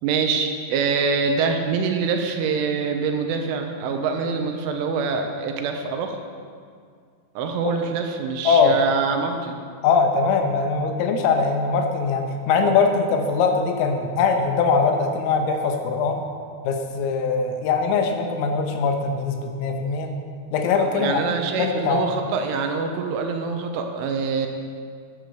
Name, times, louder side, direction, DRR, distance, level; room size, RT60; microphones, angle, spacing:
voice 1, 0.0-6.2 7.4-9.6 20.8-24.5, right 5 dB, 80° right, 4 dB, 3.3 m, -25 dB
voice 2, 9.8-16.3 16.6-20.1 20.5-21.2 21.6-22.1, left 5 dB, 85° left, 4 dB, 3.8 m, -21 dB
11.0 x 10.5 x 6.8 m, 2.1 s
omnidirectional pair, 5.8 m